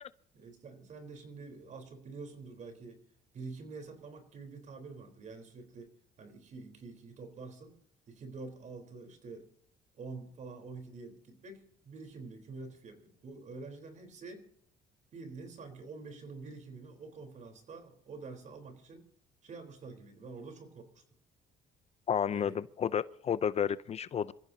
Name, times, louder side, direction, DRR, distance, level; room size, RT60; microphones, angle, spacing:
voice 1, 0.3-3.0 3.3-5.9 6.2-7.7 8.1-9.5 10.0-14.5 15.1-19.1 19.4-21.0 22.3-22.6, right 4 dB, 45° right, 3.9 m, -47 dB
voice 2, 22.1-24.3, left 8 dB, 40° left, 0.5 m, -31 dB
27.0 x 15.0 x 2.8 m
cardioid pair, 110°, 17 cm